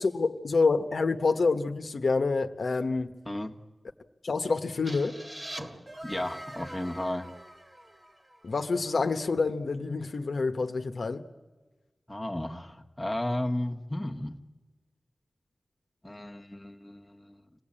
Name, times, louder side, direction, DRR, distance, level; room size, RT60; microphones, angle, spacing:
voice 1, 0.0-3.1 4.2-5.2 8.4-11.2, left 4 dB, 70° left, 1.0 m, -27 dB
sound 1, 4.9-8.6, right 1 dB, 25° right, 1.9 m, -43 dB
voice 2, 6.0-7.3 12.1-14.3 16.0-17.4, left 1 dB, 10° left, 1.4 m, -34 dB
26.5 x 18.0 x 8.8 m
wide cardioid pair, 75°, 0 cm